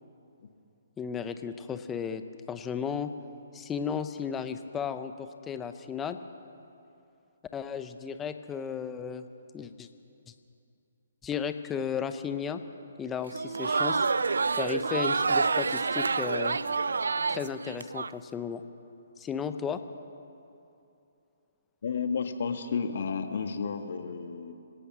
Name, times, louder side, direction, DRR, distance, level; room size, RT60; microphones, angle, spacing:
voice 1, 1.0-2.2 2.5-3.1 3.5-5.1 5.5-6.2 7.5-9.3 9.5-9.9 11.2-12.6 13.0-14.1 14.5-16.6 17.3-18.6 19.2-19.8, left 7 dB, 15° left, 9 dB, 0.9 m, -34 dB
Crowd, 13.3-18.1, right 4 dB, 85° right, 0.5 m, -28 dB
voice 2, 21.8-24.5, left 5 dB, 65° left, 7 dB, 1.8 m, -32 dB
25.0 x 17.0 x 6.2 m, 2.7 s
hypercardioid pair, 150°, 0 cm